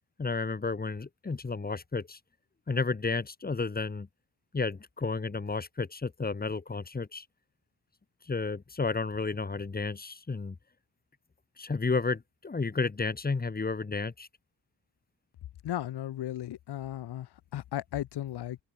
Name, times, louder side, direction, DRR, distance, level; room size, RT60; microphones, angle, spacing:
voice 1, 0.2-2.2 2.7-4.1 4.5-7.3 8.3-10.6 11.6-14.3, left 4 dB, 20° left, 1.8 m, -32 dB
voice 2, 15.6-18.6, left 12 dB, 70° left, 1.0 m, -35 dB
open air
wide cardioid pair, 150°, 41 cm